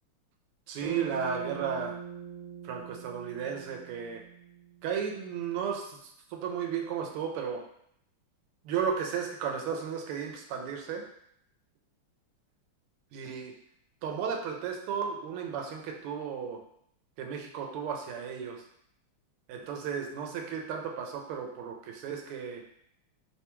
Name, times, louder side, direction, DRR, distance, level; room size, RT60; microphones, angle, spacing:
voice 1, 0.7-2.0 2.6-4.2 4.8-7.6 8.6-11.0 13.1-13.5 14.0-16.6 17.2-18.6 19.5-22.6, right 7 dB, 85° right, 2 dB, 1.5 m, -34 dB
Bass guitar, 0.8-5.2, right 7 dB, 60° right, 1.0 m, -43 dB
3.6 x 2.2 x 2.9 m, 0.72 s
omnidirectional pair, 2.4 m